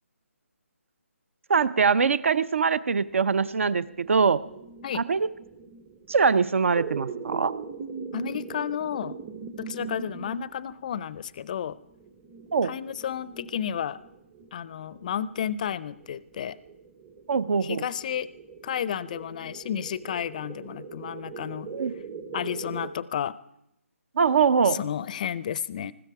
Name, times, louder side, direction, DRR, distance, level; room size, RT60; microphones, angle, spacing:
voice 1, 1.5-4.4 4.9-5.3 6.1-7.5 12.5-12.7 17.3-17.9 21.7-21.9 24.2-24.8, right 5 dB, 60° right, 18 dB, 0.7 m, -23 dB
sound 1, 3.1-22.9, right 6 dB, 10° right, 0.7 m, -41 dB
voice 2, 8.1-9.2 9.6-11.8 12.6-14.0 14.5-16.6 17.6-18.3 18.6-21.7 22.3-23.4 24.7-25.9, left 9 dB, 30° left, 19 dB, 0.5 m, -32 dB
19.5 x 15.5 x 4.8 m, 0.80 s
hypercardioid pair, 160°, 8 cm